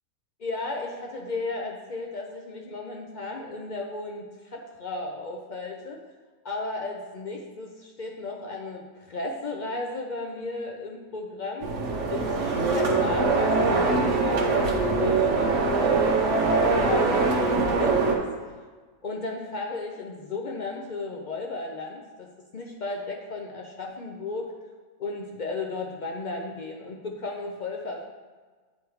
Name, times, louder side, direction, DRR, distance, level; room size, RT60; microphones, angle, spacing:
voice 1, 0.4-6.0 6.4-11.7 12.1-18.3 19.0-24.5 25.0-28.0, left 3 dB, 65° left, 1 dB, 0.4 m, -34 dB
sound 1, 11.6-18.2, right 3 dB, 60° right, 1.1 m, -23 dB
8.3 x 3.3 x 4.7 m, 1.4 s
omnidirectional pair, 1.5 m